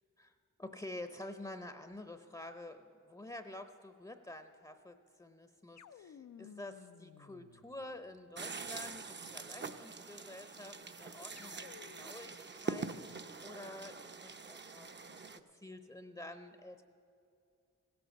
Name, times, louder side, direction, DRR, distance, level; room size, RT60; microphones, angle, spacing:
voice 1, 0.6-15.2 15.5-16.8, left 1 dB, 15° left, 8 dB, 0.7 m, -49 dB
sound 1, 5.8-8.2 11.3-12.4, left 8 dB, 60° left, 0.5 m, -56 dB
sound 2, 8.4-15.4, right 4 dB, 35° right, 0.7 m, -44 dB
16.5 x 8.0 x 6.5 m, 2.6 s
cardioid pair, 55°, 31 cm